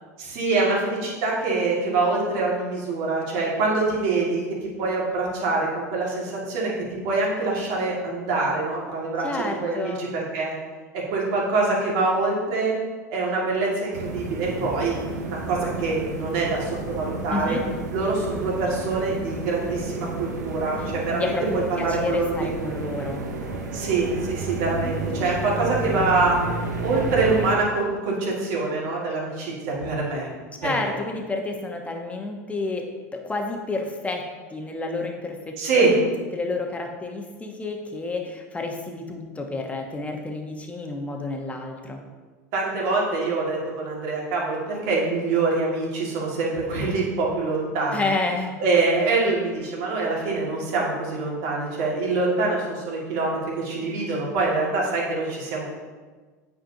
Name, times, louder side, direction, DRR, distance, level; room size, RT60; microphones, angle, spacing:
voice 1, 0.2-6.7 7.0-10.6 10.9-12.8 13.1-14.9 15.2-17.6 17.9-22.7 23.7-26.4 26.8-30.3 30.6-30.9 35.6-35.9 42.5-48.1 48.6-55.7, right 3 dB, 60° right, -4 dB, 2.1 m, -25 dB
voice 2, 9.2-10.0 17.3-17.6 20.7-23.2 30.6-42.0 47.9-48.5, left 3 dB, 15° left, 2 dB, 1.1 m, -30 dB
sound 1, 13.9-27.5, right 2 dB, 80° right, 0.8 m, -32 dB
8.8 x 5.0 x 2.8 m, 1.4 s
hypercardioid pair, 85°, 9 cm